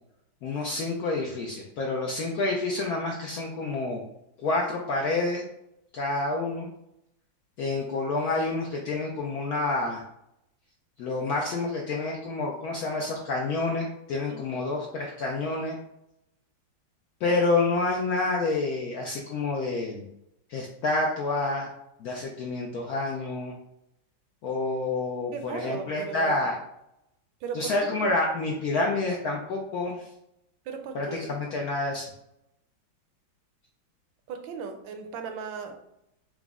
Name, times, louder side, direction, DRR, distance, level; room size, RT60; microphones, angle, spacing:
voice 1, 0.4-4.0 4.4-5.4 5.9-6.7 7.6-10.0 11.0-15.8 17.2-20.1 20.5-21.7 22.0-23.6 24.4-26.6 27.5-30.1 30.9-32.1, left 3 dB, 75° left, -1 dB, 0.8 m, -28 dB
voice 2, 14.3-14.6 25.3-26.5 27.4-28.1 30.6-31.2 34.3-35.8, right 6 dB, 80° right, 6 dB, 1.3 m, -37 dB
4.8 x 2.0 x 3.5 m, 0.81 s
omnidirectional pair, 2.1 m